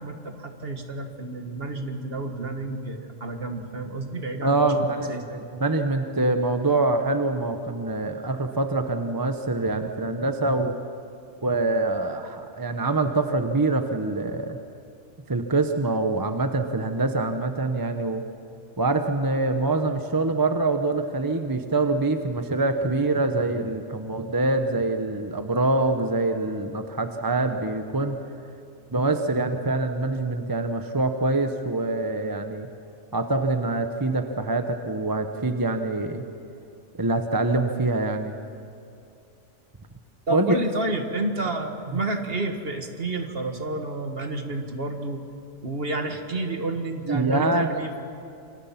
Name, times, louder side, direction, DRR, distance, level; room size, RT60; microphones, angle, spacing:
voice 1, 0.0-5.3 40.3-45.2 45.6-48.0, right 2 dB, 45° right, 5 dB, 1.9 m, -30 dB
voice 2, 4.4-10.7 11.4-14.6 15.3-18.3 18.8-28.2 28.9-32.7 33.1-36.2 37.0-38.4 40.3-40.6 41.9-42.0 47.1-47.7, right 2 dB, 20° right, 6 dB, 0.9 m, -25 dB
27.5 x 24.5 x 5.9 m, 2.6 s
omnidirectional pair, 1.3 m